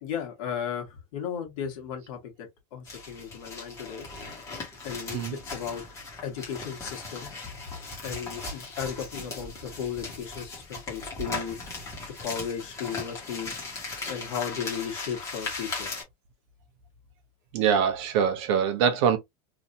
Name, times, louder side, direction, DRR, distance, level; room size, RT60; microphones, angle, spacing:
voice 1, 0.0-4.1 4.8-5.8 6.2-7.3 8.0-11.6 12.2-13.6 14.1-15.9, left 7 dB, 55° left, 1.5 m, -35 dB
sound 1, 2.9-16.0, left 3 dB, 15° left, 1.2 m, -38 dB
voice 2, 17.5-19.2, right 7 dB, 50° right, 0.7 m, -23 dB
3.2 x 2.6 x 2.6 m
supercardioid pair, 180°, 20 cm